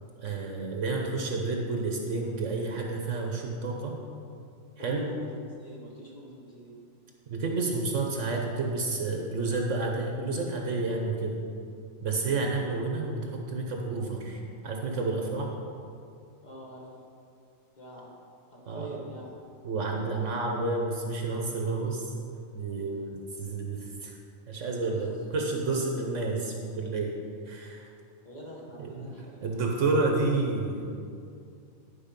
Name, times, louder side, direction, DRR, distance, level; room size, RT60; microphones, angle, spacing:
voice 1, 0.2-4.0 4.8-5.0 7.3-11.4 12.0-15.5 18.7-19.0 19.6-22.1 22.5-24.2 24.5-27.1 27.5-27.9 28.8-29.1 29.4-30.8, right 3 dB, 70° right, 1 dB, 1.2 m, -30 dB
voice 2, 4.8-6.8 16.4-16.9 17.8-18.2 18.5-19.3 24.9-25.2 28.2-29.9, right 1 dB, 35° left, -3 dB, 1.6 m, -45 dB
11.0 x 4.6 x 5.2 m, 2.4 s
omnidirectional pair, 1.4 m